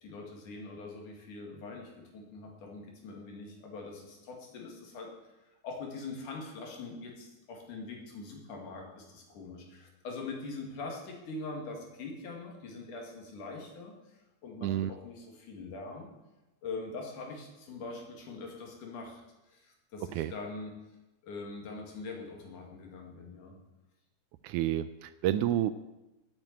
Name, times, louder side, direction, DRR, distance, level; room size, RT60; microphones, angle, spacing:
voice 1, 0.0-5.1 5.4-16.1 16.6-19.2 19.5-20.8 21.2-23.6, left 3 dB, 75° left, 1 dB, 3.7 m, -43 dB
voice 2, 24.4-25.7, right 12 dB, 80° right, 13 dB, 1.9 m, -29 dB
9.1 x 8.9 x 8.7 m, 1.0 s
omnidirectional pair, 3.7 m